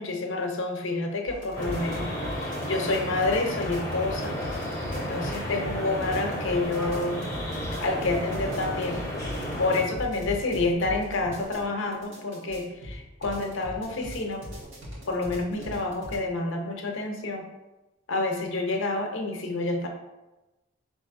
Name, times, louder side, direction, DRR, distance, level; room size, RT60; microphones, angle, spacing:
voice 1, 0.0-2.1 2.4-4.4 4.9-7.3 7.8-9.0 9.6-14.5 15.1-17.5 18.1-19.9, left 2 dB, 70° left, 3 dB, 0.7 m, -28 dB
sound 1, 1.3-16.2, equal, 70° right, 1.4 m, -39 dB
sound 2, 1.5-9.9, equal, 15° left, 0.8 m, -32 dB
3.4 x 2.9 x 4.6 m, 1.0 s
head